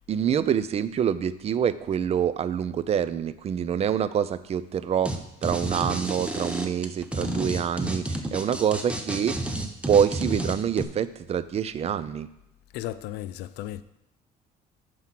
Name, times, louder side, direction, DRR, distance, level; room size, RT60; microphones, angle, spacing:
voice 1, 0.1-5.1 5.4-9.4 9.9-12.3, right 8 dB, 40° right, 0.4 m, -26 dB
sound 1, 5.0-5.2 5.4-10.8, right 1 dB, 5° right, 0.7 m, -30 dB
voice 2, 12.7-13.8, left 13 dB, 80° left, 0.4 m, -35 dB
7.5 x 4.7 x 5.7 m
cardioid pair, 110°, 17 cm